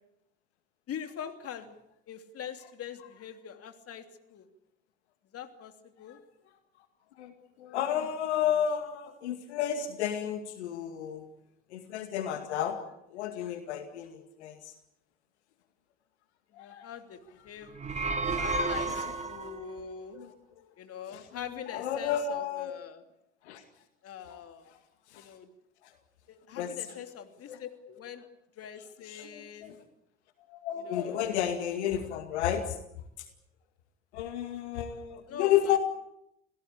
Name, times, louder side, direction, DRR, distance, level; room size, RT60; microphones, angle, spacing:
voice 1, 0.9-1.7 2.1-4.0 4.3-4.4 5.3-5.7 6.0-6.2 16.6-17.7 18.0-20.2 20.8-23.0 24.0-24.7 25.2-25.5 26.3-28.2 28.6-29.8 30.8-31.2 35.3-35.8, left 8 dB, 45° left, 7 dB, 3.0 m, -43 dB
voice 2, 7.6-11.3 11.7-12.8 13.1-14.6 16.5-16.9 18.3-19.2 20.1-20.3 21.1-21.2 21.7-22.8 23.5-23.6 25.1-25.3 26.5-27.1 27.5-27.6 29.1-29.8 30.5-32.8 34.1-35.8, left 10 dB, 75° left, 7 dB, 2.3 m, -32 dB
sound 1, 17.7-19.6, right 3 dB, 20° right, 2.1 m, -31 dB
27.0 x 18.0 x 8.5 m, 0.81 s
hypercardioid pair, 65°, 34 cm